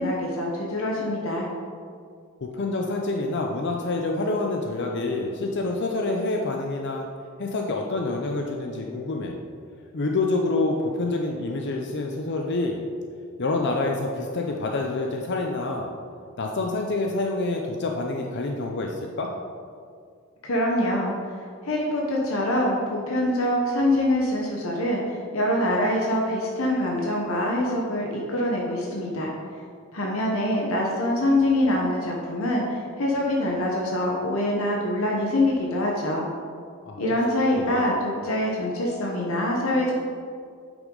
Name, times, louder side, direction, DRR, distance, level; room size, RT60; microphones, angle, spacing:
voice 1, 0.0-1.5 20.4-21.1 21.6-29.3 29.9-36.3 37.0-39.9, left 1 dB, 80° left, -2 dB, 1.1 m, -24 dB
voice 2, 2.4-7.1 7.4-9.4 9.9-12.8 13.4-15.9 16.4-19.3 36.9-37.2 37.6-37.9, left 2 dB, 55° left, 1 dB, 0.6 m, -27 dB
8.9 x 6.1 x 3.9 m, 2.2 s
head